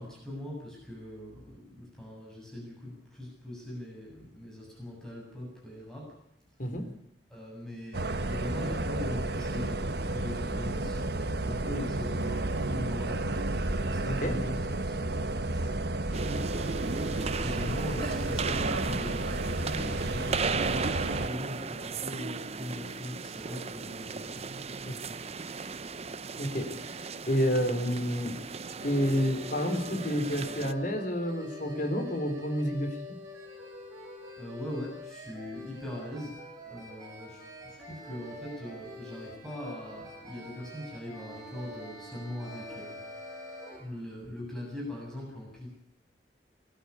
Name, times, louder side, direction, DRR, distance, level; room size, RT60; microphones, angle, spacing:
voice 1, 0.0-6.1 7.3-11.0 11.3-15.8 16.5-24.3 34.4-36.4 36.7-43.0 43.8-45.7, left 1 dB, 5° left, -3 dB, 7.5 m, -41 dB
voice 2, 6.6-6.9 14.1-14.4 24.9-25.0 26.4-28.3 28.8-33.0, equal, 50° left, 6 dB, 3.8 m, -29 dB
sound 1, 7.9-21.3, right 2 dB, 65° right, 1.2 m, -32 dB
sound 2, 16.1-30.7, right 4 dB, 35° right, 0.7 m, -36 dB
sound 3, 28.8-43.8, left 1 dB, 20° right, 7.3 m, -45 dB
22.0 x 12.0 x 9.8 m, 0.78 s
head